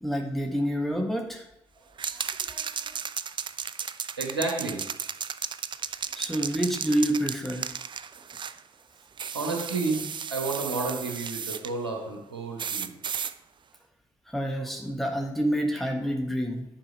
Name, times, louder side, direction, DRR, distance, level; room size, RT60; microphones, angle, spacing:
voice 1, 0.0-1.4 2.1-3.0 5.9-7.8 14.3-16.6, equal, ahead, 2 dB, 1.4 m, -29 dB
sound 1, 2.0-8.6 9.2-11.7 12.6-13.3, right 7 dB, 35° right, 0.5 m, -34 dB
voice 2, 4.2-4.9 9.3-13.0, right 3 dB, 85° right, 1 dB, 1.2 m, -31 dB
10.5 x 4.8 x 5.3 m, 0.86 s
figure-of-eight pair, 40°, 13 cm